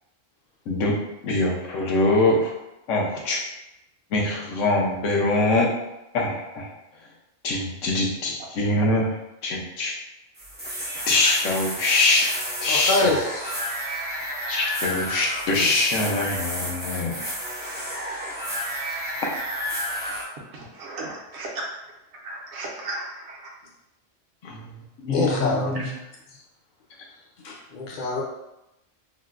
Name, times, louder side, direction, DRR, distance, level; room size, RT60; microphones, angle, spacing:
voice 1, 0.7-1.0 1.2-2.5 2.9-3.4 4.1-5.7 6.1-6.7 7.4-9.1 9.4-9.9 11.1-12.3 12.6-13.1 14.5-17.3 24.5-24.7 25.0-25.8, left 2 dB, 80° left, -1 dB, 1.0 m, -23 dB
sound 1, 10.4-20.2, equal, 15° right, 0.3 m, -31 dB
voice 2, 12.6-13.6 15.5-15.7 24.4-24.5 25.1-25.7 27.4-28.2, left 2 dB, 50° left, -1 dB, 0.6 m, -26 dB
voice 3, 20.5-21.6 22.2-23.5, right 2 dB, 65° right, -4 dB, 0.9 m, -35 dB
3.8 x 2.1 x 2.4 m, 0.91 s
omnidirectional pair, 1.3 m